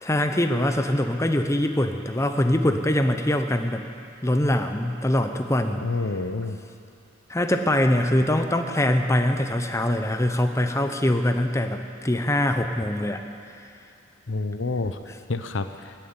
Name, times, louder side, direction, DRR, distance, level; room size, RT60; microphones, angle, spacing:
voice 1, 0.0-3.8 4.2-5.8 7.3-13.2, left 1 dB, 15° left, 6 dB, 0.8 m, -23 dB
voice 2, 5.8-6.6 14.3-15.0 15.3-15.9, left 3 dB, 75° left, 9 dB, 0.8 m, -28 dB
15.5 x 9.2 x 9.7 m, 2.6 s
head